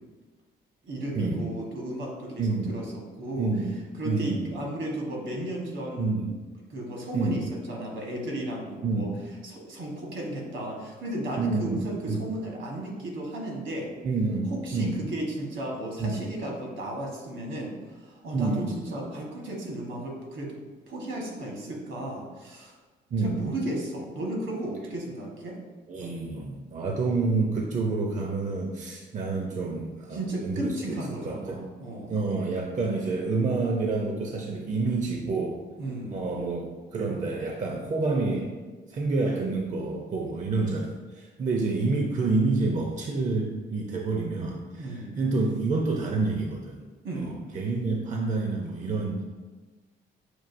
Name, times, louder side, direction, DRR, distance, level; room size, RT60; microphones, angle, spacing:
voice 1, 0.8-3.5 4.0-6.3 6.7-9.1 9.4-13.9 14.5-20.6 20.9-22.7 23.2-25.6 30.1-32.1 35.8-36.2 44.8-45.2 47.0-47.4, right 1 dB, 70° right, -1 dB, 1.2 m, -34 dB
voice 2, 2.4-2.7 3.4-3.7 4.0-4.5 6.0-6.3 7.1-7.4 8.8-9.1 11.4-12.2 14.0-15.0 16.0-16.2 18.3-18.8 23.1-23.4 25.9-31.0 31.2-31.6 32.1-35.6 36.1-38.5 38.9-46.8 47.1-49.2, right 3 dB, 40° right, 1 dB, 0.5 m, -28 dB
6.1 x 2.5 x 2.5 m, 1.3 s
cardioid pair, 90°, 20 cm